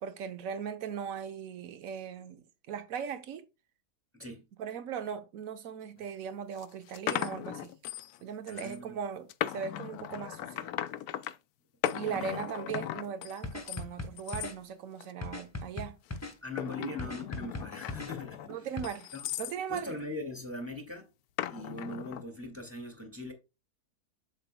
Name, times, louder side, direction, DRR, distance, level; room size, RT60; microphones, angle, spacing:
voice 1, 0.0-3.5 4.6-7.7 8.2-10.7 11.9-16.0 16.8-16.9 18.5-19.1 19.4-19.9, right 7 dB, 60° right, 1.2 m, -38 dB
voice 2, 4.1-4.5 8.5-9.0 12.1-12.5 16.4-18.5 19.1-19.3 19.7-21.1 21.5-23.3, left 2 dB, 10° right, 1.9 m, -40 dB
sound 1, 6.0-6.1 6.6-8.2 8.5-8.8 9.3-11.4 11.8-13.8 14.2-14.5 15.0-15.4 16.1-19.6 21.4-22.2, left 12 dB, 75° left, 1.0 m, -37 dB
sound 2, 13.4-14.6 15.2-16.4 17.0-18.1 18.8-18.9, left 2 dB, 10° left, 1.1 m, -38 dB
8.0 x 7.0 x 2.2 m
omnidirectional pair, 1.7 m